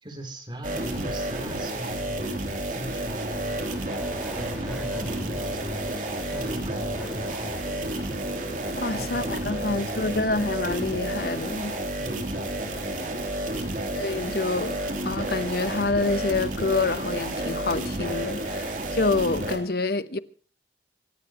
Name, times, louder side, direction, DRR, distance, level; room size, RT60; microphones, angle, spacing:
voice 1, 0.0-3.7 4.3-7.9 8.9-10.2 12.0-12.8, equal, 25° right, 3.6 m, -40 dB
sound 1, 0.6-19.6, right 1 dB, 45° right, 3.3 m, -31 dB
Subway metro underground, 3.7-14.4 14.8-15.5 15.7-15.9, equal, 5° right, 5.0 m, -44 dB
voice 2, 8.8-11.7 13.9-14.8 15.0-20.2, left 3 dB, 55° left, 1.0 m, -27 dB
26.5 x 15.5 x 3.1 m
head